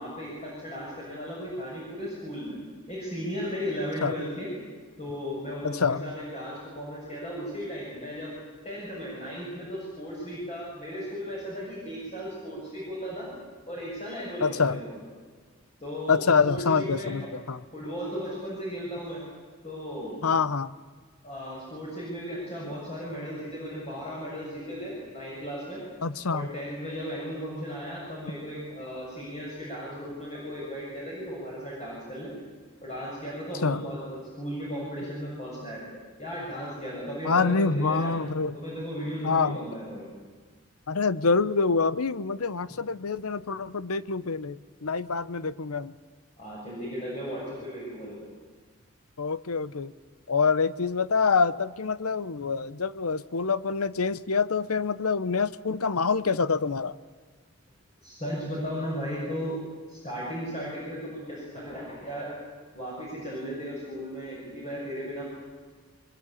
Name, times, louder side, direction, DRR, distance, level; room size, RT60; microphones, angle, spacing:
voice 1, 0.0-2.6 2.9-4.5 5.0-8.3 8.6-13.3 13.7-15.0 15.8-17.1 17.7-19.2 19.6-20.2 21.2-25.8 26.3-32.3 32.8-38.1 38.5-40.1 46.4-48.3 58.0-59.6 59.9-62.3 62.7-65.2, equal, 30° left, -5 dB, 6.7 m, -36 dB
voice 2, 5.6-6.1 14.4-14.8 16.1-17.6 20.2-20.7 26.0-26.5 33.6-33.8 37.2-38.6 39.2-39.6 40.9-45.9 49.2-49.9 50.3-56.9, left 5 dB, 90° left, 16 dB, 0.8 m, -26 dB
23.5 x 22.0 x 8.6 m, 1.5 s
head